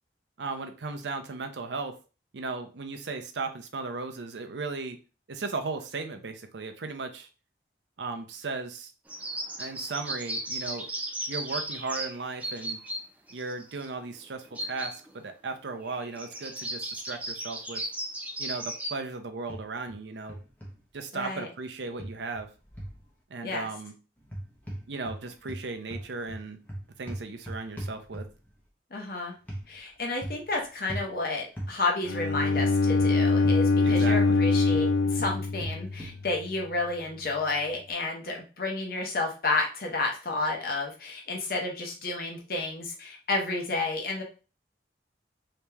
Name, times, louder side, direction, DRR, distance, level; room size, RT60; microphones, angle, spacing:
voice 1, 0.4-1.9 2.3-5.0 5.3-7.3 8.0-8.9 9.6-10.9 11.3-12.8 13.3-17.8 18.4-20.4 20.9-22.5 23.3-23.9 24.9-26.6 27.0-28.2 33.8-34.2, right 3 dB, 85° right, 6 dB, 0.6 m, -36 dB
sound 1, 9.1-13.0 13.3-13.9 14.5-15.1 15.5-15.6 15.9-18.9, right 1 dB, 10° right, 0.4 m, -36 dB
sound 2, 19.5-20.0 20.3-20.7 22.0-23.0 24.2-25.2 25.5-28.5 29.5-29.7 30.2-30.5 30.9-31.1 31.6-31.7 32.5-34.0 34.3-36.2, right 1 dB, 10° left, 0.8 m, -38 dB
voice 2, 21.1-21.5 23.4-23.7 28.9-29.3 29.7-44.2, left 3 dB, 55° left, 0 dB, 0.8 m, -31 dB
Bowed string instrument, 32.0-36.2, left 3 dB, 85° left, 0.4 m, -23 dB
3.2 x 2.9 x 3.4 m, 0.34 s
head